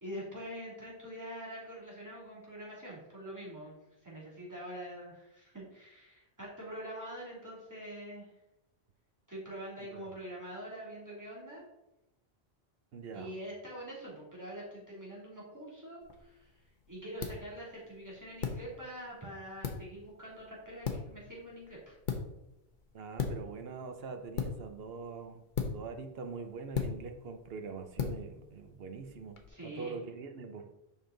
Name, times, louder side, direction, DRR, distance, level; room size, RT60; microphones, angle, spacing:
voice 1, 0.0-3.8 4.0-8.3 9.3-11.6 13.1-22.0 29.5-30.0, right 1 dB, 15° right, -5 dB, 2.6 m, -45 dB
voice 2, 9.8-10.1 12.9-13.3 22.9-30.7, right 4 dB, 65° right, 6 dB, 1.0 m, -44 dB
sound 1, 16.0-29.5, left 6 dB, 50° left, 1.0 m, -40 dB
7.3 x 5.5 x 3.9 m, 0.91 s
omnidirectional pair, 1.1 m